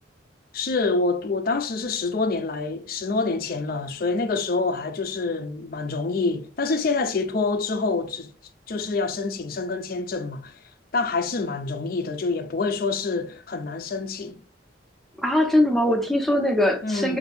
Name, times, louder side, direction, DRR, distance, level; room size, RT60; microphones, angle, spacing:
voice 1, 0.5-8.3 8.7-10.6 10.9-14.4 16.8-17.2, left 3 dB, 50° left, 0.4 m, -26 dB
voice 2, 15.2-17.2, left 1 dB, ahead, 0.5 m, -21 dB
2.7 x 2.6 x 4.1 m
head